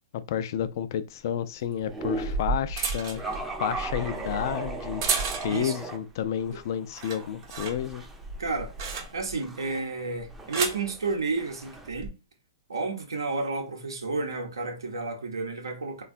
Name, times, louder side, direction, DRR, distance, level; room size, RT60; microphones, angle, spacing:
voice 1, 0.1-3.2 3.6-5.0 5.4-8.0, left 9 dB, 55° left, 0.3 m, -30 dB
sound 1, 0.6-0.7 1.8-5.8 6.2-6.6 6.9-9.4 10.2-10.9 11.8-12.1, right 4 dB, 55° right, 0.8 m, -33 dB
sound 2, 1.9-2.5 3.2-6.0 6.4-11.9, right 2 dB, 10° right, 0.5 m, -38 dB
voice 2, 8.4-8.7 9.1-12.1 12.7-16.0, right 3 dB, 85° right, 0.7 m, -31 dB
3.4 x 2.2 x 2.4 m
hypercardioid pair, 120°, 2 cm